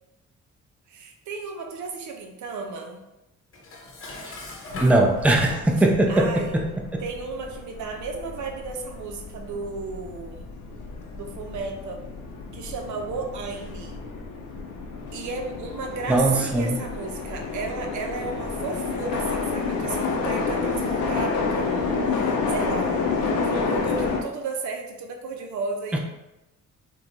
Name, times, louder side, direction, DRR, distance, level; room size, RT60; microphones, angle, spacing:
voice 1, 0.9-3.0 6.1-6.6 7.0-10.5 11.1-12.0 12.5-14.0 15.1-26.0, right 4 dB, 75° right, 3 dB, 0.7 m, -34 dB
Dishes pots and pans, 3.5-6.0, left 2 dB, 45° left, 0.8 m, -39 dB
sound 1, 4.7-24.2, left 4 dB, 80° left, 0.6 m, -30 dB
voice 2, 4.8-6.7 16.1-16.8 25.9-26.0, right 1 dB, 5° right, 1 dB, 0.5 m, -20 dB
4.7 x 2.3 x 2.6 m, 0.94 s
cardioid pair, 90°, 30 cm